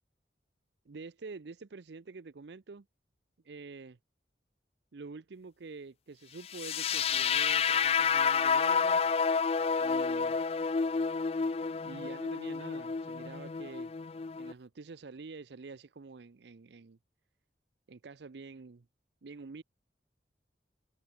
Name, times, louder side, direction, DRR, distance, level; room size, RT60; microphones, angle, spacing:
voice 1, 0.9-2.9 3.5-4.0 4.9-9.2 9.8-10.4 11.8-13.9 14.4-17.0 17.9-18.9 19.2-19.6, right 4 dB, 70° right, 0.6 m, -47 dB
sound 1, 6.5-14.5, left 6 dB, 35° left, 0.3 m, -30 dB
head